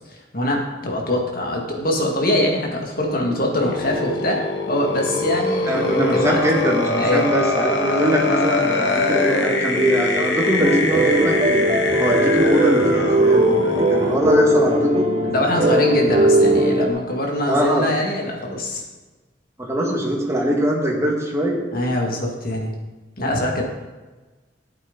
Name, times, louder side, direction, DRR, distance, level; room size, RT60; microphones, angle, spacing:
voice 1, 0.1-4.4 4.7-6.4 7.0-7.3 15.3-18.8 21.7-22.7 23.2-23.7, left 1 dB, 55° left, 0 dB, 2.1 m, -23 dB
sound 1, 3.6-14.2, left 3 dB, 85° left, 1.4 m, -23 dB
voice 2, 5.7-11.7 12.0-15.1 17.5-17.9 19.6-21.6, right 1 dB, 15° right, -2 dB, 1.9 m, -22 dB
sound 2, 10.6-16.9, right 1 dB, 35° right, 0.8 m, -19 dB
13.0 x 8.2 x 4.0 m, 1.2 s
head